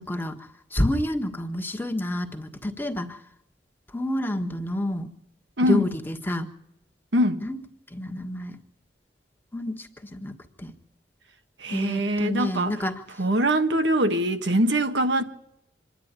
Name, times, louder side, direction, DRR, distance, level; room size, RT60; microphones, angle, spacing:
voice 1, 0.1-0.4 0.7-3.2 3.9-5.1 5.7-6.5 7.4-7.6 7.9-8.6 9.5-10.7 11.7-12.9, left 1 dB, 10° left, 1.5 m, -28 dB
voice 2, 5.6-5.9 7.1-7.4 11.6-12.8 13.2-15.2, right 1 dB, 80° right, 1.5 m, -23 dB
25.5 x 10.5 x 9.6 m
head